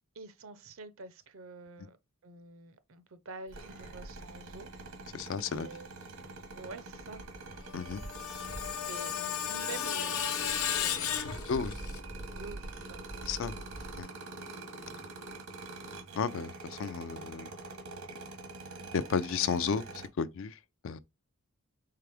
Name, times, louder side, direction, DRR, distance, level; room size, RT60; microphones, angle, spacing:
voice 1, 0.1-2.0 2.2-4.7 5.5-5.9 6.6-7.2 8.8-11.2 12.2-13.3 14.8-14.9, right 4 dB, 65° right, 0.6 m, -47 dB
sound 1, 3.5-9.0 9.4-14.0, right 1 dB, 15° right, 0.5 m, -47 dB
sound 2, 3.5-20.1, right 3 dB, 85° right, 1.2 m, -46 dB
voice 2, 5.1-5.7 7.7-8.0 11.5-11.7 13.2-13.6 13.9-14.1 16.2-17.5 18.9-20.6 20.8-21.0, left 6 dB, 60° left, 0.4 m, -33 dB
Screech, 7.7-12.0, left 9 dB, 85° left, 0.8 m, -34 dB
4.7 x 3.3 x 3.4 m
head